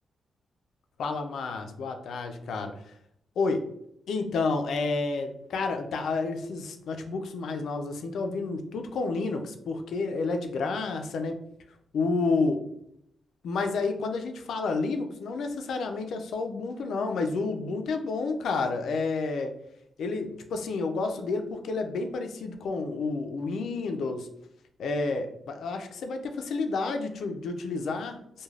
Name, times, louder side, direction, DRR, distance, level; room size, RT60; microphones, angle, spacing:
voice 1, 1.0-2.7 3.4-3.6 4.1-11.4 11.9-12.6 13.4-19.5 20.0-24.3 24.8-28.4, left 3 dB, 80° left, 5 dB, 0.4 m, -30 dB
2.4 x 2.2 x 3.2 m, 0.74 s
cardioid pair, 115°, 0 cm